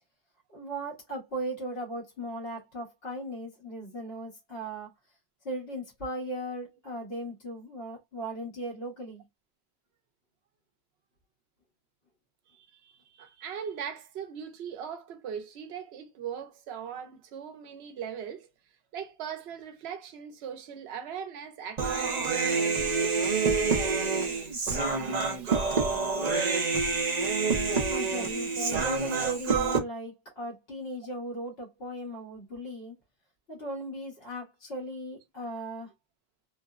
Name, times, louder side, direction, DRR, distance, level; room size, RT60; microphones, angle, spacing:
voice 1, 0.5-4.9 5.4-9.2 27.9-32.9 33.5-35.9, right 1 dB, 70° left, 1.4 m, -37 dB
voice 2, 12.5-18.5 18.9-23.2 25.0-25.6, right 8 dB, 90° right, 0.9 m, -40 dB
Human voice, 21.8-29.8, right 4 dB, 45° right, 0.7 m, -27 dB
3.0 x 2.0 x 2.3 m
omnidirectional pair, 1.0 m